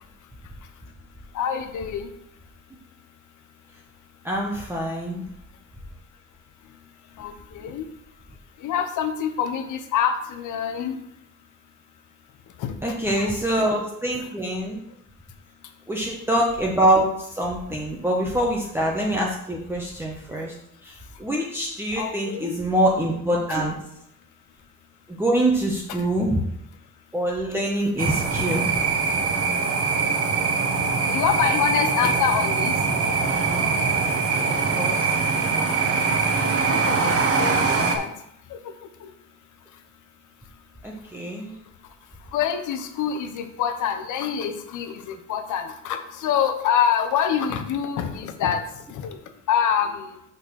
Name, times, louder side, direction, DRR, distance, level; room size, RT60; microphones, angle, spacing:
voice 1, 0.2-0.9 1.3-2.1 6.6-7.9 8.6-11.2 12.5-13.3 14.2-14.3 15.6-15.7 17.7-17.8 20.9-21.2 21.9-22.6 25.9-26.1 30.8-33.1 36.0-39.1 39.7-39.8 40.4-40.6 41.0-50.2, left 8 dB, 80° left, 8 dB, 0.9 m, -27 dB
voice 2, 4.2-5.2 12.8-14.8 15.9-20.5 20.8-23.7 25.1-26.4 27.1-28.7 34.5-35.2 40.8-41.6, right 1 dB, 10° right, -2 dB, 1.0 m, -25 dB
sound 1, 28.0-38.0, right 4 dB, 50° right, 1.1 m, -23 dB
5.6 x 4.1 x 6.2 m, 0.77 s
cardioid pair, 90°, 30 cm